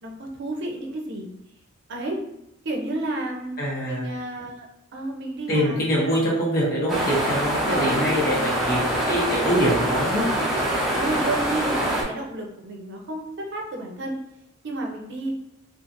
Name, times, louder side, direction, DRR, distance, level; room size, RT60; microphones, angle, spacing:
voice 1, 0.0-1.3 1.9-2.2 2.6-3.5 3.8-4.7 4.9-6.2 7.7-8.2 8.9-9.3 10.9-14.1 14.6-15.3, right 2 dB, 60° right, 1 dB, 0.5 m, -31 dB
voice 2, 3.6-4.1 5.5-10.3, equal, 50° left, -6 dB, 1.0 m, -24 dB
sound 1, 6.9-12.0, right 1 dB, ahead, 0.6 m, -24 dB
2.7 x 2.4 x 2.5 m, 0.85 s
head